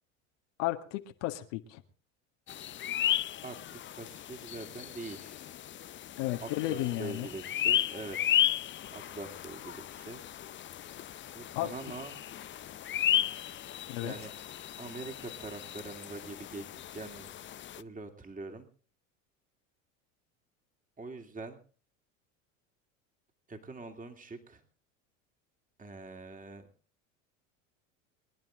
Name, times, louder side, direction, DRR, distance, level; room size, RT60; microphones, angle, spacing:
voice 1, 0.6-1.8 6.2-7.3 11.5-11.7 13.9-14.1, left 16 dB, 70° left, 6 dB, 1.9 m, -33 dB
sound 1, 2.5-17.8, left 11 dB, 30° left, 0.6 m, -34 dB
voice 2, 3.4-5.5 6.4-8.4 8.9-10.2 11.3-12.2 13.8-14.3 14.8-16.7 16.9-17.3 17.8-18.7 21.0-21.6 23.5-24.6 25.8-26.7, right 3 dB, 20° right, 5 dB, 2.9 m, -44 dB
23.5 x 10.5 x 3.8 m, 0.40 s
hypercardioid pair, 85°, 39 cm